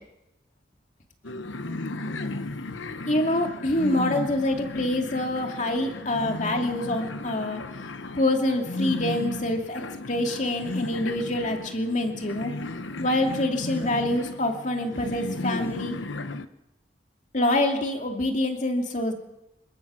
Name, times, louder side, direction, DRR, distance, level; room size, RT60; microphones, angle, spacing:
sound 1, 1.2-16.5, left 2 dB, 85° left, 1.0 m, -34 dB
voice 1, 3.1-7.6 8.1-12.5 13.0-15.9 17.3-19.1, left 1 dB, 40° left, 3 dB, 2.5 m, -26 dB
27.0 x 15.5 x 6.3 m, 0.92 s
head